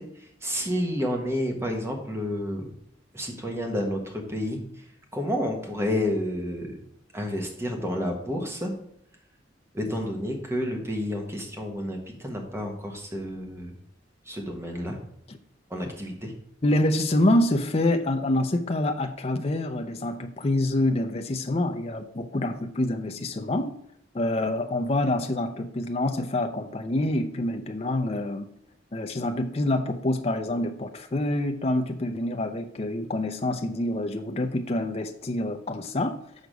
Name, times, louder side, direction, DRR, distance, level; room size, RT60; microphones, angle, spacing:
voice 1, 0.0-2.7 3.1-4.8 5.1-6.7 7.1-8.7 9.7-13.7 14.2-15.0 15.7-16.3, equal, 15° right, 2 dB, 1.3 m, -30 dB
voice 2, 16.6-23.7 24.1-28.5 28.9-36.2, left 1 dB, 35° left, 6 dB, 0.5 m, -26 dB
6.5 x 4.7 x 5.1 m, 0.71 s
head